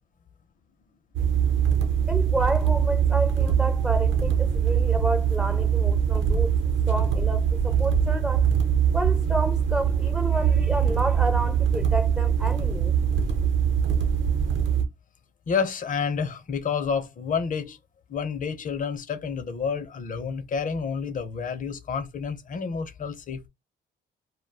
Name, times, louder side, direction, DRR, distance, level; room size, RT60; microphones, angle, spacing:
sound 1, 1.1-14.8, right 8 dB, 70° right, 0.7 m, -22 dB
voice 1, 2.1-6.5 6.9-8.5 8.9-12.9, right 1 dB, 5° right, 0.4 m, -30 dB
voice 2, 15.5-17.8 18.1-23.5, left 6 dB, 40° left, 0.6 m, -29 dB
2.3 x 2.2 x 3.3 m
cardioid pair, 90°, 20 cm